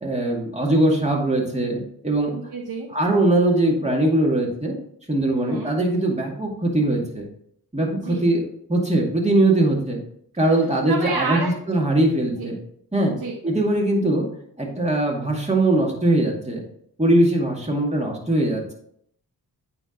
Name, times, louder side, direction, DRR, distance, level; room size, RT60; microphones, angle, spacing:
voice 1, 0.0-2.3 2.9-4.8 5.1-7.2 7.7-8.4 8.7-10.0 10.4-12.6 12.9-13.1 13.4-14.3 14.6-16.6 17.0-18.7, right 1 dB, 15° right, -1 dB, 2.2 m, -21 dB
voice 2, 2.3-2.9 5.4-5.7 8.1-8.2 10.9-11.5 12.4-12.5 13.1-13.4, right 4 dB, 70° right, 0 dB, 1.0 m, -29 dB
8.9 x 3.6 x 3.8 m, 0.67 s
cardioid pair, 50°, 39 cm